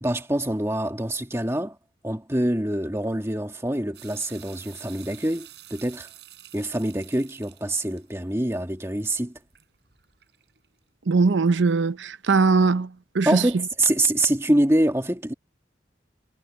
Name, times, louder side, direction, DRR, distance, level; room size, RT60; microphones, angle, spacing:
voice 1, 0.0-1.8 2.0-6.1 6.5-9.4 13.2-15.3, right 1 dB, 15° right, 1.6 m, -25 dB
sound 1, 3.9-10.8, right 13 dB, 65° right, 4.5 m, -50 dB
voice 2, 11.1-13.5, right 4 dB, 85° right, 0.7 m, -21 dB
head